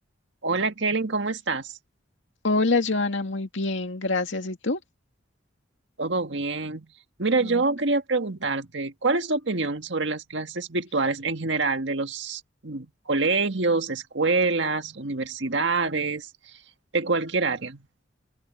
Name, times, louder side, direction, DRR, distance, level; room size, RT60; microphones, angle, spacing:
voice 1, 0.4-1.8 6.0-6.9 7.2-16.6 16.9-17.9, right 3 dB, 70° right, 1.7 m, -26 dB
voice 2, 2.4-4.8 7.4-7.6, left 3 dB, 75° left, 2.2 m, -25 dB
open air
head